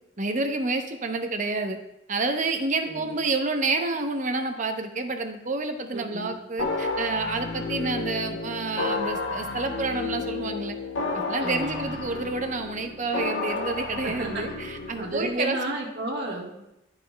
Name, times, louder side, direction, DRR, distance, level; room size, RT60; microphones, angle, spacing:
voice 1, 0.2-1.8 2.1-10.8 11.1-15.8, right 3 dB, 40° right, 6 dB, 0.7 m, -29 dB
voice 2, 5.9-6.3 11.4-12.0 14.0-14.5 15.0-16.5, right 2 dB, 65° right, -1 dB, 1.5 m, -32 dB
sound 1, 6.6-15.3, left 3 dB, 85° left, 0.6 m, -32 dB
12.0 x 5.5 x 2.2 m, 0.88 s
head